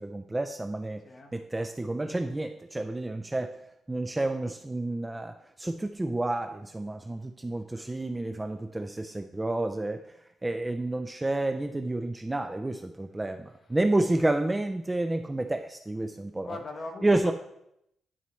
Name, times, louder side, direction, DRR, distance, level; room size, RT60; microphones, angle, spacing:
voice 1, 0.0-1.0 1.3-3.6 3.9-10.1 10.4-16.6 17.0-17.3, right 2 dB, 10° right, 7 dB, 0.3 m, -30 dB
voice 2, 16.4-17.3, left 3 dB, 35° left, 4 dB, 1.2 m, -39 dB
11.0 x 5.5 x 3.1 m, 0.79 s
cardioid pair, 145°, 0 cm